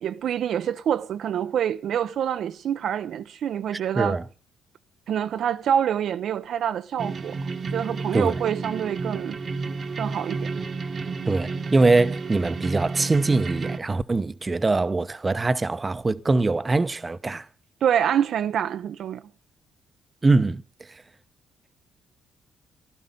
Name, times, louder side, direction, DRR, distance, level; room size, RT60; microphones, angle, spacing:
voice 1, 0.0-4.2 5.1-7.4 7.7-9.4 10.0-10.5 17.8-19.2, right 9 dB, 70° right, 0.6 m, -26 dB
sound 1, 7.0-13.8, right 4 dB, 45° right, 1.1 m, -31 dB
voice 2, 11.2-17.5 20.2-20.6, right 3 dB, 25° right, 0.8 m, -22 dB
15.5 x 12.0 x 5.4 m
cardioid pair, 90°, 0 cm